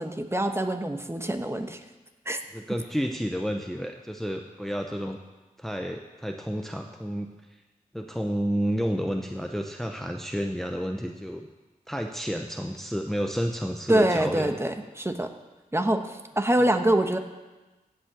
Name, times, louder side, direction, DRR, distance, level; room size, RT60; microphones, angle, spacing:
voice 1, 0.0-1.8 2.2-2.4 13.9-15.3 15.7-17.2, right 1 dB, 15° right, 6 dB, 1.1 m, -25 dB
voice 2, 2.5-5.2 5.6-7.3 7.9-11.5 11.9-14.6, equal, ahead, 3 dB, 0.8 m, -30 dB
16.5 x 5.6 x 7.4 m, 1.2 s
wide cardioid pair, 60°, 15 cm